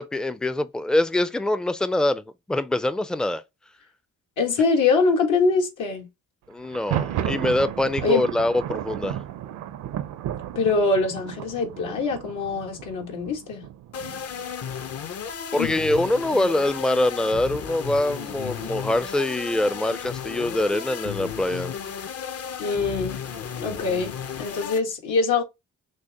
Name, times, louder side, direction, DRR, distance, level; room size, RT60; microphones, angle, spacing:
voice 1, 0.0-3.4 6.5-9.2 15.5-21.7, left 1 dB, 5° left, 0.3 m, -24 dB
voice 2, 4.4-6.1 8.0-8.2 10.5-13.6 15.6-15.7 22.6-23.3 23.6-25.4, left 4 dB, 80° left, 1.5 m, -23 dB
Thunder, 6.6-14.4, right 11 dB, 75° right, 0.6 m, -33 dB
sound 1, 13.9-24.8, left 7 dB, 50° left, 0.7 m, -34 dB
6.3 x 2.1 x 2.8 m
cardioid pair, 90°, 30 cm